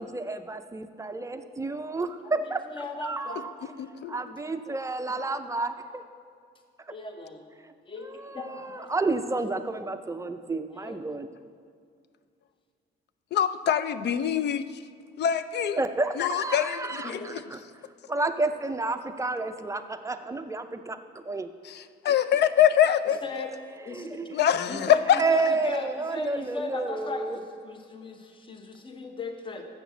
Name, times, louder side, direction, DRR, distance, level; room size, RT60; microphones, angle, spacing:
voice 1, 0.0-3.5 4.1-6.0 7.6-7.7 8.0-11.3 15.8-17.6 18.1-21.5 22.1-22.2 23.9-24.4 25.2-27.4, right 3 dB, 15° right, 9 dB, 0.5 m, -31 dB
voice 2, 2.2-3.5 5.0-5.1 6.9-7.4 7.8-8.9 10.8-11.0 17.0-17.4 23.2-23.5 23.8-24.2 24.7-25.0 25.3-29.6, left 2 dB, 25° left, 4 dB, 0.9 m, -37 dB
voice 3, 3.8-4.2 13.3-14.8 15.2-15.8 16.2-17.4 21.6-23.2 24.3-25.2, left 10 dB, 60° left, 13 dB, 0.4 m, -24 dB
7.3 x 6.0 x 7.0 m, 2.2 s
cardioid pair, 90°, 20 cm